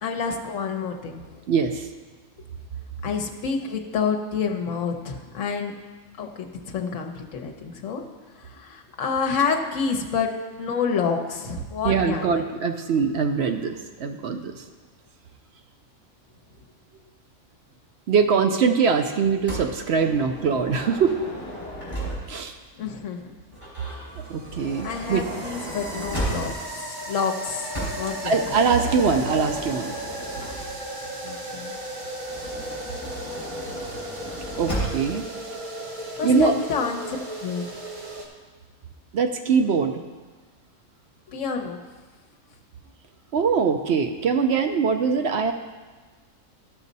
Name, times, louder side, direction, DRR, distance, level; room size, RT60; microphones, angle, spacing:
voice 1, 0.0-1.4 3.0-5.7 6.2-8.0 8.4-10.3 10.6-12.4 22.8-23.2 24.8-27.7 28.0-28.4 31.2-31.7 36.1-37.2 37.4-37.7 41.3-41.8, left 5 dB, 70° left, 3 dB, 1.2 m, -28 dB
voice 2, 1.5-1.9 11.8-14.6 18.1-21.2 22.3-22.5 24.3-25.2 28.2-30.0 34.6-35.2 36.2-36.6 39.1-40.0 43.3-45.5, right 5 dB, 60° right, 6 dB, 0.8 m, -22 dB
Motor vehicle (road) / Sliding door, 19.5-22.5 23.5-26.8 27.7-31.0 32.2-35.2, equal, 20° left, 3.6 m, -34 dB
sound 1, 23.6-38.3, right 1 dB, 40° right, 1.2 m, -36 dB
12.5 x 6.3 x 4.0 m, 1.3 s
omnidirectional pair, 1.4 m